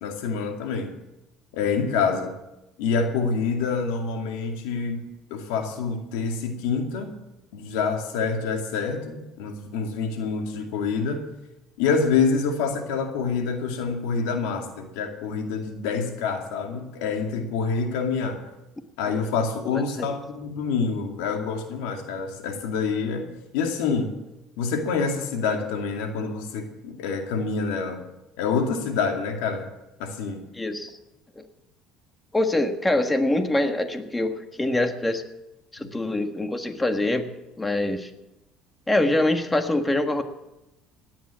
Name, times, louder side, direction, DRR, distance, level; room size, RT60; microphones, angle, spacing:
voice 1, 0.0-0.9 1.5-2.3 2.8-5.0 5.3-7.1 7.5-11.2 11.8-18.4 19.0-24.1 24.6-28.0 28.4-29.6 30.0-30.4, left 5 dB, 90° left, 4 dB, 2.3 m, -27 dB
voice 2, 30.5-30.9 31.4-31.5 32.3-35.2 35.7-37.3 37.6-38.1 38.9-40.2, left 1 dB, 15° left, 7 dB, 1.6 m, -24 dB
17.0 x 10.5 x 7.5 m, 0.93 s
cardioid pair, 105°, 0 cm